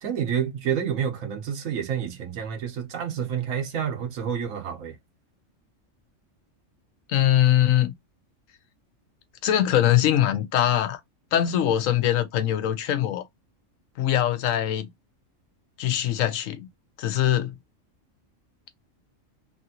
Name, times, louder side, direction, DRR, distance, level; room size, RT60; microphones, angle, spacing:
voice 1, 0.0-5.0, right 8 dB, 85° right, 1.3 m, -29 dB
voice 2, 7.1-7.9 9.4-11.0 11.3-13.2 14.0-14.9 15.8-16.7 17.0-17.6, left 11 dB, 85° left, 1.0 m, -22 dB
3.2 x 2.5 x 2.7 m
omnidirectional pair, 1.4 m